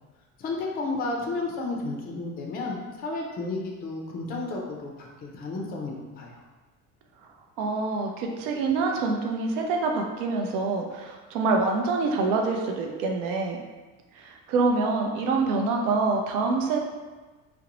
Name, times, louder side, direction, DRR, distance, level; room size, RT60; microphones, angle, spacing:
voice 1, 0.4-6.4, left 3 dB, 25° left, -1 dB, 0.4 m, -32 dB
voice 2, 7.6-13.6 14.1-16.8, right 3 dB, 80° right, 2 dB, 0.5 m, -26 dB
2.5 x 2.0 x 2.9 m, 1.3 s
cardioid pair, 120°, 35 cm